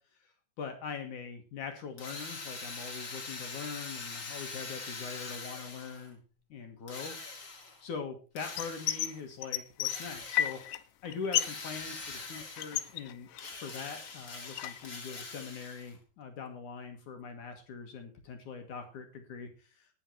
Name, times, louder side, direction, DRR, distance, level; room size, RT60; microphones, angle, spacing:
voice 1, 0.6-6.2 6.5-7.1 7.8-10.6 11.0-13.3 13.6-19.9, left 5 dB, 60° left, 5 dB, 2.5 m, -42 dB
Drill, 2.0-6.1 6.9-7.8 8.4-9.2 9.9-10.8 11.3-13.0 13.3-16.0, left 3 dB, 35° left, 2.6 m, -43 dB
sound 1, 8.6-9.1 9.4-10.8 11.1-11.6 11.9-13.7 14.1-14.9, left 12 dB, 80° left, 2.9 m, -32 dB
19.0 x 6.4 x 4.4 m, 0.35 s
omnidirectional pair, 4.8 m